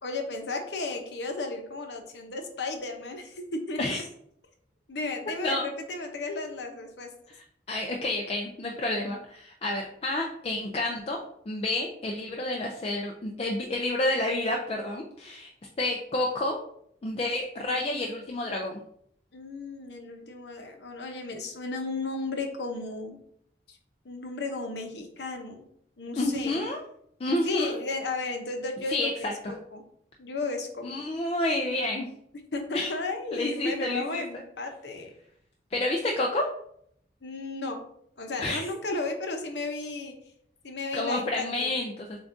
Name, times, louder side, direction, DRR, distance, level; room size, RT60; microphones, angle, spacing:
voice 1, 0.0-4.0 4.9-7.1 19.3-23.2 23.7-23.8 24.0-25.6 26.0-26.6 27.4-29.8 30.2-31.0 32.5-35.1 37.2-37.8 38.2-40.1 40.6-41.7, left 3 dB, 75° left, 4 dB, 0.7 m, -34 dB
voice 2, 7.7-15.5 15.8-16.6 17.0-18.8 26.2-26.8 27.2-27.8 28.9-29.3 30.8-32.1 32.7-32.9 33.3-34.2 35.7-36.4 38.4-38.6 40.9-42.2, left 1 dB, 35° left, 0 dB, 0.4 m, -29 dB
7.0 x 2.3 x 2.6 m, 0.70 s
head